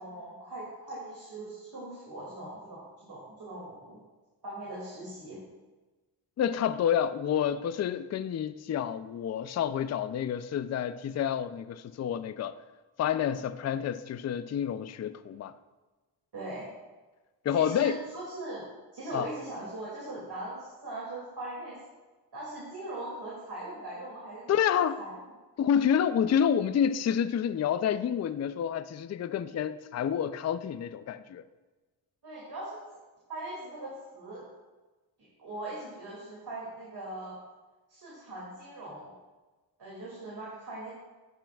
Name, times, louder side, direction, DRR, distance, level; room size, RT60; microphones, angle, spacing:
voice 1, 0.0-4.0 4.4-5.4 16.3-16.7 17.5-18.6 18.9-21.8 22.3-25.1 32.2-32.8 33.3-34.4 35.4-37.4 37.9-39.1 39.8-40.9, right 1 dB, 55° right, -6 dB, 2.4 m, -40 dB
voice 2, 6.4-12.5 13.0-15.5 17.4-18.0 19.1-19.3 24.5-25.0 25.6-31.4, left 8 dB, 40° left, 13 dB, 0.4 m, -28 dB
12.0 x 5.7 x 2.3 m, 1.2 s
cardioid pair, 55°, 46 cm